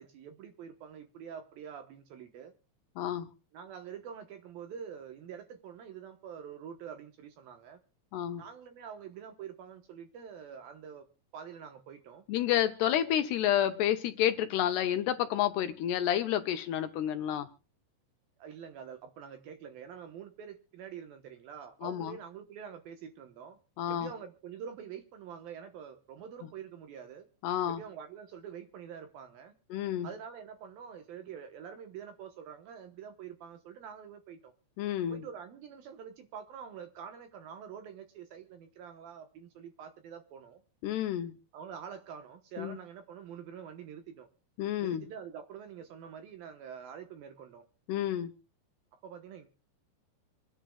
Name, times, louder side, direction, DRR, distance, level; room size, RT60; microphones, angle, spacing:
voice 1, 0.0-2.5 3.5-7.8 8.4-11.1 11.3-12.2 18.4-23.6 23.9-27.3 27.7-29.5 30.0-34.5 35.1-40.6 41.5-44.3 44.8-47.7 48.9-49.5, right 7 dB, 65° right, 7 dB, 2.5 m, -46 dB
voice 2, 3.0-3.3 8.1-8.4 12.3-17.5 21.8-22.1 23.8-24.1 27.4-27.8 29.7-30.1 34.8-35.2 40.8-41.4 42.6-42.8 44.6-45.0 47.9-48.3, left 11 dB, 75° left, 8 dB, 2.8 m, -30 dB
26.5 x 10.0 x 2.3 m, 0.33 s
omnidirectional pair, 5.2 m